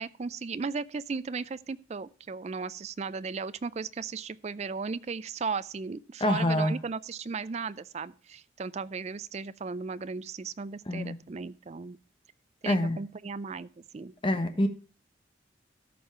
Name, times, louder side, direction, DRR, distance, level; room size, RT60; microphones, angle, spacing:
voice 1, 0.0-12.0 12.6-13.7 13.9-14.1, right 5 dB, 35° right, 0.4 m, -36 dB
voice 2, 6.2-6.8 10.9-11.2 12.6-13.0 14.2-14.7, left 1 dB, 25° left, 1.0 m, -26 dB
13.5 x 5.5 x 4.4 m
head